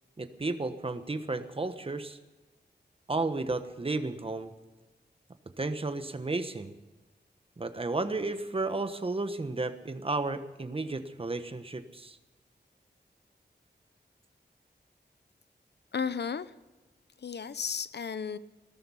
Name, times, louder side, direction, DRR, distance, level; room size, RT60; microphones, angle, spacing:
voice 1, 0.2-2.2 3.1-4.5 5.6-6.7 7.6-12.2, right 3 dB, 30° right, 9 dB, 1.2 m, -33 dB
voice 2, 15.9-16.5 17.2-18.4, left 6 dB, 75° left, 15 dB, 0.8 m, -33 dB
17.5 x 13.5 x 5.6 m, 1.1 s
wide cardioid pair, 115°, 18 cm